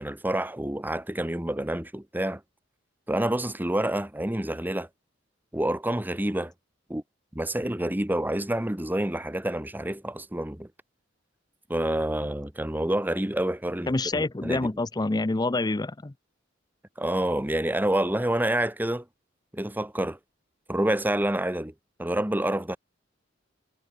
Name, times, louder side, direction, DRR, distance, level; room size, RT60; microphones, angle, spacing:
voice 1, 0.0-2.4 3.1-4.9 5.5-6.5 6.9-7.0 7.3-10.7 11.7-14.7 17.0-19.0 19.5-20.2 20.7-21.7 22.0-22.8, right 1 dB, 10° right, 1.2 m, -28 dB
voice 2, 13.9-16.1, left 2 dB, 20° left, 0.5 m, -27 dB
head